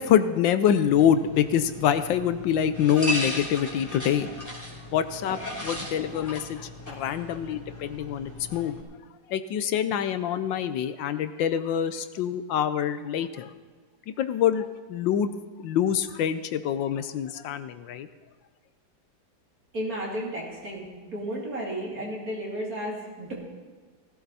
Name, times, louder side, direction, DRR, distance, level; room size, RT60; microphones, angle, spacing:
voice 1, 0.0-4.3 4.9-8.7 9.3-13.5 14.2-15.3 15.6-18.1, left 9 dB, 75° left, 11 dB, 1.4 m, -25 dB
sound 1, 0.8-8.8, equal, 10° left, 3.1 m, -37 dB
voice 2, 19.7-23.3, right 1 dB, 45° right, -3 dB, 3.6 m, -33 dB
16.5 x 15.5 x 4.2 m, 1.5 s
omnidirectional pair, 2.1 m